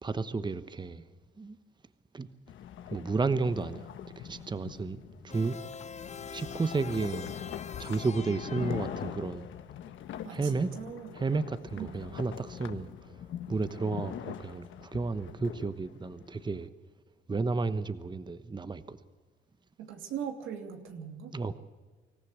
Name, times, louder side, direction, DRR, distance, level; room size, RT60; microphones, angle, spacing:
voice 1, 0.0-1.0 1.4-1.6 2.1-2.3 2.9-3.9 4.2-5.6 6.3-7.4 7.8-9.5 10.3-10.7 11.1-13.2 13.5-16.7 17.3-19.0 21.3-21.6, right 4 dB, 20° right, 1.0 m, -32 dB
sound 1, 2.5-16.7, left 9 dB, 75° left, 1.4 m, -43 dB
sound 2, 5.3-9.6, left 6 dB, 35° left, 0.8 m, -44 dB
voice 2, 10.2-11.1 11.8-12.0 19.8-21.3, right 8 dB, 90° right, 2.8 m, -40 dB
25.5 x 14.5 x 8.0 m
cardioid pair, 90°, 20 cm